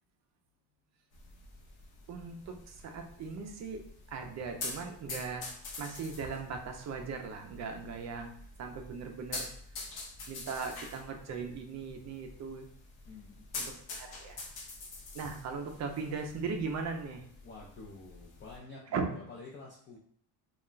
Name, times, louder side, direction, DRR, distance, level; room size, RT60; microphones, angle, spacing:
sound 1, 1.1-18.6, left 3 dB, 55° left, 0.8 m, -46 dB
voice 1, 2.1-3.8 4.1-5.5 5.8-8.3 8.6-9.5 10.3-12.7 13.6-14.4 15.1-17.2 18.9-19.1, right 5 dB, 40° right, 4 dB, 0.4 m, -38 dB
voice 2, 13.0-13.6 17.4-20.0, left 3 dB, 30° left, -3 dB, 0.3 m, -49 dB
2.4 x 2.1 x 3.7 m, 0.63 s
cardioid pair, 135°, 44 cm